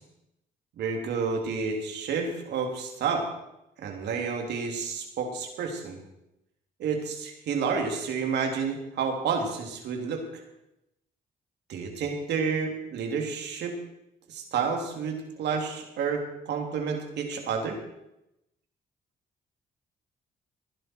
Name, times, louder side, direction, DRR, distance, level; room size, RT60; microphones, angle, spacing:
voice 1, 0.8-3.2 3.8-6.0 6.8-10.2 11.7-13.7 14.3-17.8, right 5 dB, 80° right, 2 dB, 3.1 m, -30 dB
19.0 x 11.0 x 4.6 m, 0.86 s
cardioid pair, 80°, 17 cm